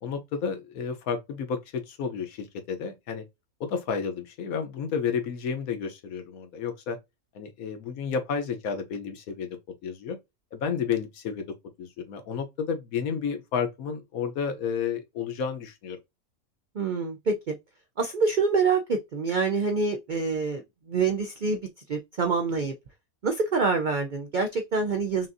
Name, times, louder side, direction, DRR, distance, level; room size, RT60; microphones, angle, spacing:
voice 1, 0.0-3.2 3.6-7.0 7.3-9.5 9.8-10.2 10.5-11.5 11.8-16.0, left 6 dB, 75° left, 1.2 m, -31 dB
voice 2, 16.7-17.6 18.0-22.7 23.2-25.3, right 4 dB, 70° right, 0.4 m, -26 dB
5.8 x 2.6 x 2.6 m
omnidirectional pair, 1.5 m